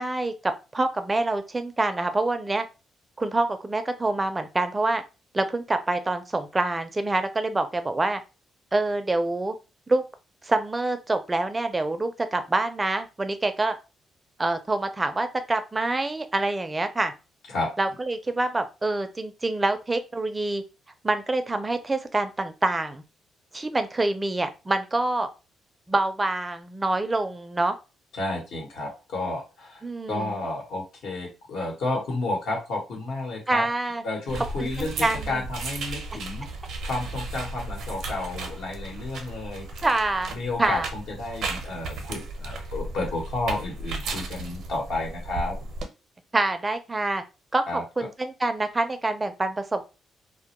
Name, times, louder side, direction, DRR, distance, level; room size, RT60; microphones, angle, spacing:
voice 1, 0.0-2.7 3.2-5.0 5.3-8.2 8.7-9.5 9.9-10.0 10.4-13.8 14.4-17.1 17.8-20.6 21.0-23.0 23.5-25.3 25.9-27.8 29.8-30.4 33.5-34.0 34.6-35.4 39.8-40.3 40.6-40.9 46.3-47.2 47.5-49.9, right 2 dB, 20° right, 9 dB, 0.4 m, -26 dB
voice 2, 28.1-29.8 30.1-33.6 34.0-36.4 36.8-39.6 40.3-45.5 47.7-47.8, left 2 dB, 75° left, -1 dB, 1.1 m, -31 dB
sound 1, 34.3-45.8, right 2 dB, 70° right, 0.6 m, -35 dB
2.2 x 2.1 x 2.8 m, 0.30 s
cardioid pair, 90°, 0 cm